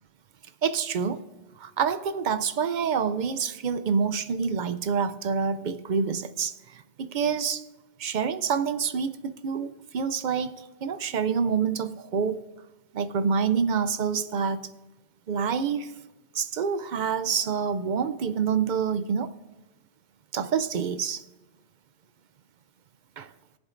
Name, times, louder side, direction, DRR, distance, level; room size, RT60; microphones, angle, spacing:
voice 1, 0.6-1.2 1.6-7.6 8.0-12.5 12.9-14.7 15.3-15.9 16.3-19.3 20.3-21.2 23.2-23.3, right 6 dB, 60° right, 0.5 m, -27 dB
21.5 x 7.4 x 2.5 m
omnidirectional pair, 1.2 m